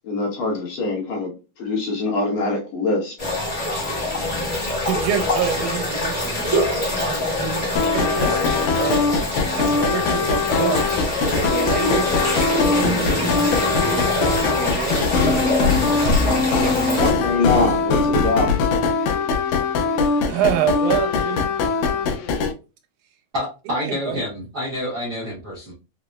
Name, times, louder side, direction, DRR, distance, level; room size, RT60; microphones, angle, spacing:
voice 1, 0.0-1.3 1.6-3.1 17.0-18.5, left 2 dB, 65° left, 2.1 m, -23 dB
sound 1, 3.2-17.1, left 1 dB, 25° left, 1.0 m, -24 dB
voice 2, 4.8-6.5 7.0-9.2 9.5-11.0 11.3-12.7 13.6-15.9 16.2-17.4 20.2-21.5 23.8-24.2, right 9 dB, 90° right, 2.1 m, -28 dB
sound 2, 7.8-22.5, left 4 dB, 85° left, 2.1 m, -21 dB
voice 3, 23.3-25.7, left 1 dB, 60° right, 1.0 m, -28 dB
5.2 x 2.0 x 2.2 m
omnidirectional pair, 3.4 m